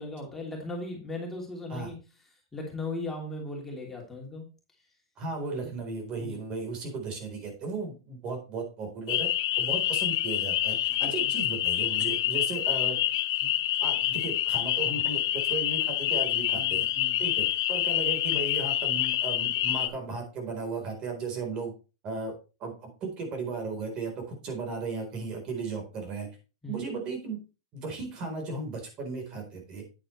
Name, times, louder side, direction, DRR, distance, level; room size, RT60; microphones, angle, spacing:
voice 1, 0.0-2.0 2.5-4.5 5.6-5.7 6.2-6.4 10.9-11.3 12.0-12.1 16.5-17.2 26.6-26.8, left 2 dB, 10° left, -1 dB, 3.1 m, -38 dB
voice 2, 5.2-9.3 9.6-13.0 13.4-13.5 13.8-16.9 17.2-21.7 22.0-22.3 22.6-26.3 26.7-27.4 27.7-29.8, right 4 dB, 35° right, 3 dB, 4.1 m, -35 dB
sound 1, 9.1-19.9, left 13 dB, 65° left, 0.8 m, -27 dB
9.2 x 8.6 x 3.3 m, 0.32 s
hypercardioid pair, 125°, 2 cm